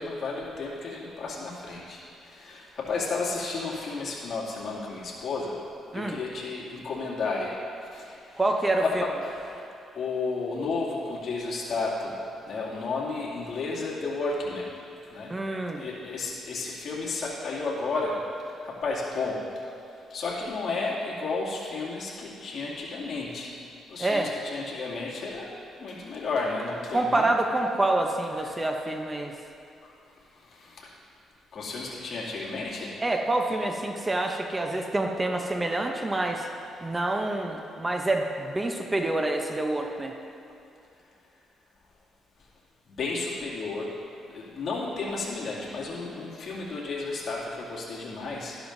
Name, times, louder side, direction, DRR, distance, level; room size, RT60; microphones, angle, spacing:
voice 1, 0.0-5.6 5.9-7.6 7.9-8.4 8.8-9.6 9.9-12.2 12.5-14.7 15.1-15.3 15.8-19.4 20.1-23.5 23.9-27.2 28.4-28.6 30.5-30.9 31.5-33.0 42.9-43.9 44.3-48.6, left 3 dB, 55° left, -5 dB, 2.4 m, -32 dB
voice 2, 8.4-9.0 15.3-15.9 24.0-24.3 26.9-29.3 33.0-36.5 36.8-40.1, right 2 dB, 20° right, 3 dB, 0.7 m, -27 dB
13.0 x 12.0 x 2.7 m, 2.6 s
cardioid pair, 90°, 0 cm